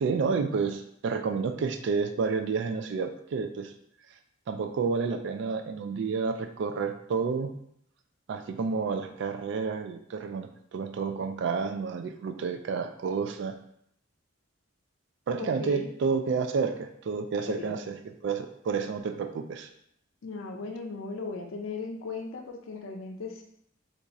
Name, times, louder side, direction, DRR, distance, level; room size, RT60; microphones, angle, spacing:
voice 1, 0.0-3.7 4.5-7.5 8.3-13.6 15.3-18.0 18.2-19.7, right 5 dB, 60° right, 8 dB, 0.3 m, -30 dB
voice 2, 15.4-15.9 17.6-17.7 20.2-23.4, left 4 dB, 90° left, 3 dB, 0.5 m, -37 dB
2.5 x 2.3 x 4.0 m, 0.71 s
head